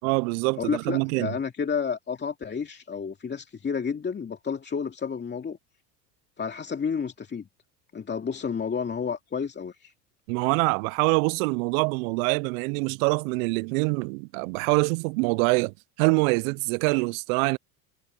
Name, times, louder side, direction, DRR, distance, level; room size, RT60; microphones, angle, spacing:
voice 1, 0.0-1.4 10.3-17.6, right 32 dB, 60° right, 0.6 m, -25 dB
voice 2, 0.6-5.6 6.4-7.4 7.9-9.9, left 6 dB, 20° left, 2.4 m, -31 dB
hypercardioid pair, 95°, 48 cm